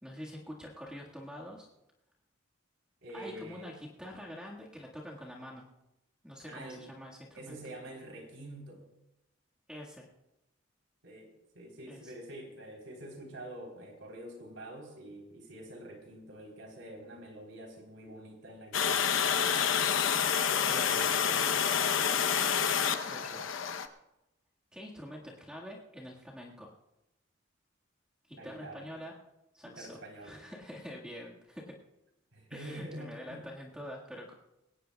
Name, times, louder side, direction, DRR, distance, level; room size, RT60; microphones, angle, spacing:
voice 1, 0.0-1.7 3.1-5.7 6.2-7.6 9.7-10.1 11.9-12.1 20.7-20.9 23.1-23.4 24.7-26.7 28.3-29.1 29.5-31.8 32.5-34.3, equal, 5° right, -4 dB, 1.7 m, -46 dB
voice 2, 3.0-3.7 6.4-6.9 7.3-8.9 11.0-11.3 11.5-19.2 20.6-21.9 28.3-28.9 29.6-30.4 32.3-33.5, right 1 dB, 75° right, 1 dB, 3.8 m, -46 dB
Water, 18.7-23.9, left 7 dB, 80° left, 0.8 m, -28 dB
21.0 x 18.0 x 2.3 m, 0.91 s
head